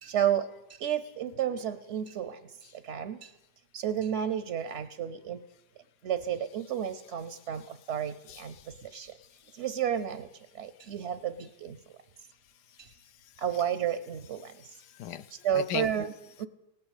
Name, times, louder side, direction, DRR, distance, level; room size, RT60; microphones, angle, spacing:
voice 1, 0.0-2.4 2.7-3.3 3.7-5.4 6.0-8.6 8.8-9.1 9.5-11.8 12.8-12.9 13.4-14.5 15.4-16.1 16.4-16.5, right 9 dB, 55° right, 12 dB, 0.8 m, -32 dB
voice 2, 8.3-9.0 13.4-14.0 14.3-15.9 16.2-16.5, left 10 dB, 75° left, 15 dB, 1.3 m, -41 dB
18.0 x 9.6 x 8.3 m, 0.99 s
omnidirectional pair, 1.8 m